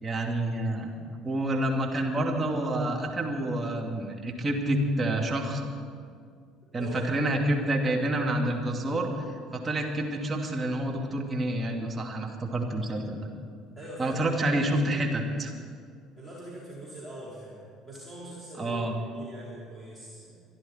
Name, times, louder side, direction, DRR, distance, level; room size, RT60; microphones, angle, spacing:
voice 1, 0.0-0.9 1.2-5.6 6.7-9.1 9.5-13.3 14.0-15.5 18.6-19.0, right 1 dB, 25° right, 0 dB, 2.4 m, -28 dB
voice 2, 6.8-7.2 13.7-14.4 14.8-15.0 16.2-20.3, right 1 dB, 10° right, -8 dB, 4.2 m, -43 dB
24.0 x 11.0 x 4.4 m, 2.1 s
figure-of-eight pair, 60°, 0 cm